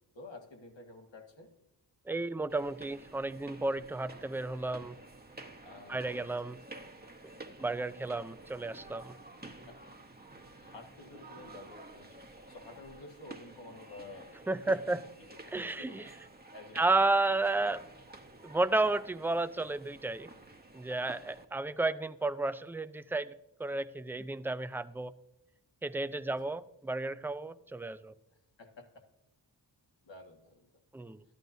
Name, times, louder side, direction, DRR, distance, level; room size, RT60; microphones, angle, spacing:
voice 1, 0.1-1.5 5.6-6.3 6.7-6.8 9.7-9.8 10.6-12.2 12.5-14.3 14.6-16.2 16.5-16.8 21.0-21.1 26.3-26.4 28.6-29.0 30.0-30.7, left 2 dB, 75° left, 3 dB, 1.8 m, -51 dB
voice 2, 2.1-5.0 5.9-6.6 7.6-9.1 14.5-15.0 15.5-16.1 16.8-17.8 18.4-20.3 20.7-23.3 23.6-25.1 25.8-28.1 30.9-31.2, right 2 dB, 5° right, 12 dB, 0.4 m, -32 dB
sound 1, 2.5-21.4, right 2 dB, 20° right, 1.0 m, -51 dB
13.0 x 11.0 x 2.7 m, 0.90 s
wide cardioid pair, 75°, 45 cm